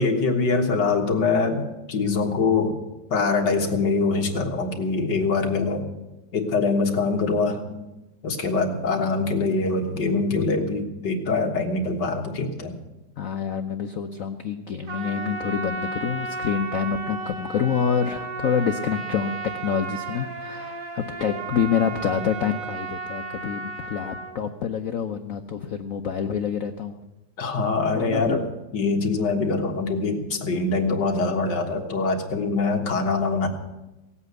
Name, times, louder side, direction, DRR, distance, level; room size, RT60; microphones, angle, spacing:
voice 1, 0.0-2.8 3.1-5.9 6.3-7.8 8.2-12.8 27.4-28.4 28.7-33.5, left 3 dB, 55° left, 2 dB, 2.0 m, -24 dB
voice 2, 13.2-27.0 27.9-28.4, left 7 dB, 90° left, 6 dB, 0.7 m, -27 dB
Trumpet, 14.8-24.3, right 3 dB, 45° right, 1.7 m, -34 dB
17.5 x 8.4 x 8.0 m, 1.0 s
omnidirectional pair, 2.3 m